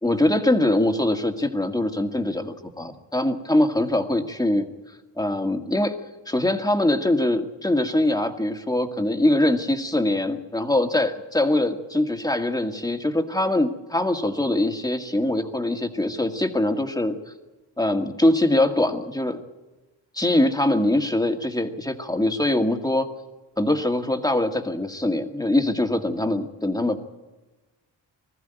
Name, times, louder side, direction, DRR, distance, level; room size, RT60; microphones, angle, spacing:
voice 1, 0.0-4.7 5.2-6.0 6.3-17.2 17.8-19.4 20.1-23.1 23.6-27.0, left 1 dB, 10° left, 5 dB, 1.9 m, -23 dB
21.0 x 14.5 x 9.2 m, 1.2 s
cardioid pair, 80°, 45 cm